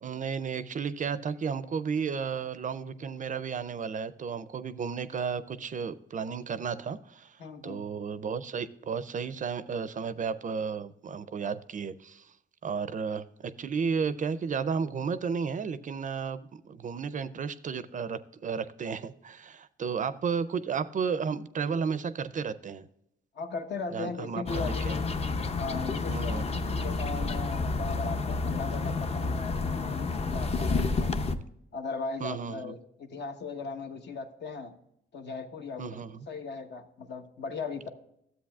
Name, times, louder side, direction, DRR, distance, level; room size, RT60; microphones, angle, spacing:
voice 1, 0.0-12.3 12.6-22.9 23.9-25.0 26.1-26.4 32.2-32.7 35.8-36.3, right 6 dB, 40° right, 14 dB, 0.4 m, -33 dB
voice 2, 7.4-7.9 23.3-25.1 25.5-31.1 31.7-34.8 35.1-37.9, left 4 dB, 65° left, 6 dB, 1.0 m, -38 dB
sound 1, 24.5-31.4, left 3 dB, 35° left, 0.6 m, -30 dB
13.0 x 7.9 x 2.3 m, 0.76 s
cardioid pair, 125°, 19 cm